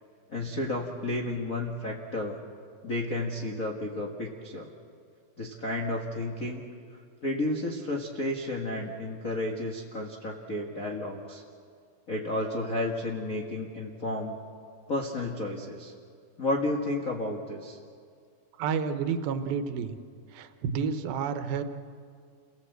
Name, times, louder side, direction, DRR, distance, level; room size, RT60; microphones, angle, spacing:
voice 1, 0.3-2.4 2.8-4.7 5.4-6.6 7.2-11.4 12.1-14.4 14.9-15.9 16.4-17.8, left 2 dB, 65° left, -1 dB, 0.8 m, -32 dB
voice 2, 18.6-20.0 20.3-21.6, right 6 dB, 75° right, 9 dB, 2.7 m, -30 dB
29.0 x 18.0 x 7.9 m, 2.2 s
omnidirectional pair, 4.4 m